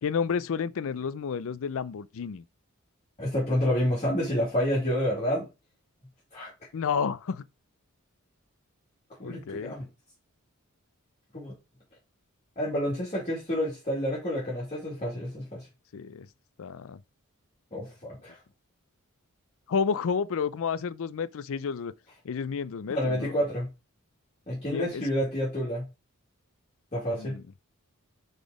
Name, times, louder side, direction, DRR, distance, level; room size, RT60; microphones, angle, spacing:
voice 1, 0.0-2.4 6.7-7.4 9.2-9.8 15.9-16.3 16.6-17.0 19.7-21.9 22.2-23.3 24.7-25.0 27.2-27.4, left 6 dB, 65° left, 0.4 m, -31 dB
voice 2, 3.2-5.4 6.3-6.5 9.2-9.9 11.3-11.5 12.6-15.6 17.7-18.4 22.9-23.7 24.5-25.9 26.9-27.4, equal, 30° left, 2.4 m, -29 dB
5.3 x 4.1 x 4.9 m
head